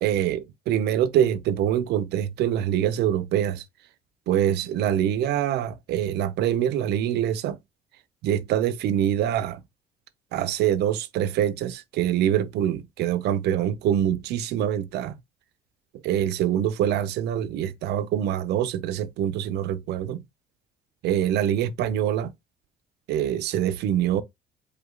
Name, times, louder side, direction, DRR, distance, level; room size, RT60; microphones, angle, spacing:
voice 1, 0.0-3.6 4.3-7.6 8.2-9.6 10.3-15.2 16.0-20.2 21.0-22.3 23.1-24.2, right 10 dB, 75° right, 0.7 m, -24 dB
4.9 x 2.4 x 3.7 m
cardioid pair, 110°, 17 cm